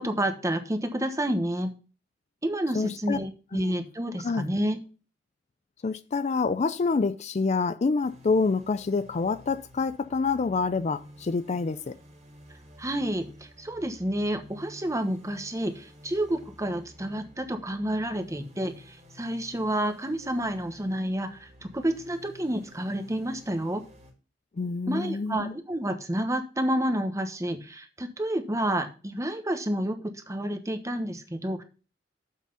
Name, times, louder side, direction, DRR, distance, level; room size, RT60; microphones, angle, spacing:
voice 1, 0.0-1.7 2.4-4.8 12.8-23.8 24.9-31.6, right 1 dB, 20° right, 1.2 m, -29 dB
voice 2, 2.7-3.2 3.5-3.7 4.2-4.4 5.8-11.9 24.6-25.5, left 4 dB, 40° left, 0.4 m, -27 dB
sound 1, 8.0-24.1, left 1 dB, 35° right, 2.4 m, -52 dB
7.3 x 5.9 x 5.5 m
head